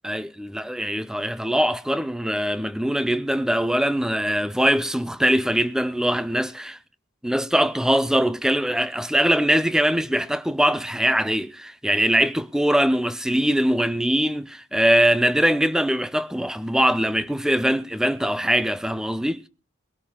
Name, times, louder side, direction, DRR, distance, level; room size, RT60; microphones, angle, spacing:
voice 1, 0.0-6.8 7.2-19.4, equal, 5° right, 0.5 m, -22 dB
23.0 x 13.0 x 2.3 m
head